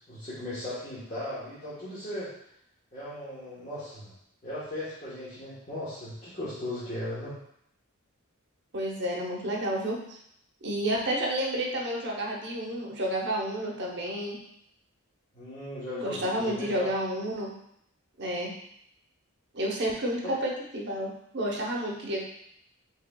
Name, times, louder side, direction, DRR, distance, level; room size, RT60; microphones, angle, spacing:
voice 1, 0.1-2.3 2.9-4.1 4.4-7.4 15.3-16.8 20.2-20.3, left 1 dB, 35° left, -12 dB, 1.1 m, -37 dB
voice 2, 8.7-10.0 10.6-14.4 16.0-17.5 18.2-18.5 19.5-22.2, right 1 dB, 55° right, -2 dB, 0.8 m, -30 dB
4.6 x 3.5 x 2.3 m, 0.73 s
head